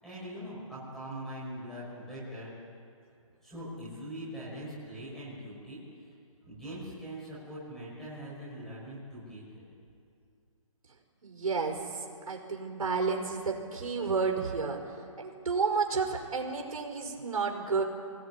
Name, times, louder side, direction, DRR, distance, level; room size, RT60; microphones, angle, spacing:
voice 1, 0.0-2.5 3.4-5.8 6.4-9.6, equal, ahead, -8 dB, 6.1 m, -42 dB
voice 2, 11.2-14.8 15.2-17.8, right 4 dB, 85° right, 2 dB, 5.3 m, -31 dB
25.5 x 18.0 x 9.8 m, 2.5 s
hypercardioid pair, 175°, 18 cm